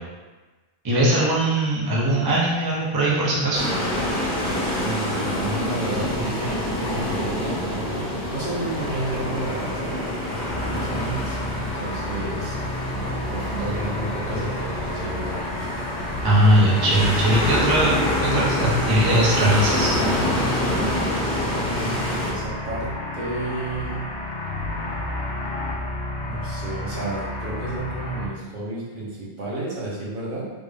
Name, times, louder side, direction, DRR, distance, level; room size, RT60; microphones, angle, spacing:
voice 1, 0.8-3.7 16.2-19.9, right 1 dB, 30° right, -6 dB, 0.5 m, -20 dB
sound 1, 3.5-22.3, left 1 dB, 55° left, 1.0 m, -27 dB
voice 2, 4.7-10.1 10.7-12.6 12.9-15.4 21.5-24.1 26.2-30.5, right 2 dB, 50° right, -6 dB, 1.0 m, -32 dB
sound 2, 10.5-28.3, left 1 dB, 80° left, 0.9 m, -31 dB
3.5 x 2.5 x 3.3 m, 1.3 s
omnidirectional pair, 1.1 m